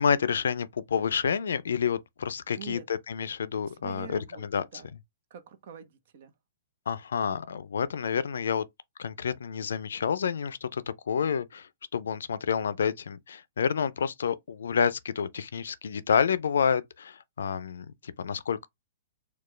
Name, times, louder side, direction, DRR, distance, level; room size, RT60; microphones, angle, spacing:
voice 1, 0.0-4.6 6.9-8.6 9.0-18.7, left 7 dB, 80° left, 0.4 m, -29 dB
voice 2, 2.5-2.8 3.7-4.4 4.7-4.9 5.3-6.3, right 9 dB, 60° right, 0.8 m, -45 dB
4.3 x 2.3 x 3.1 m
hypercardioid pair, 130°, 0 cm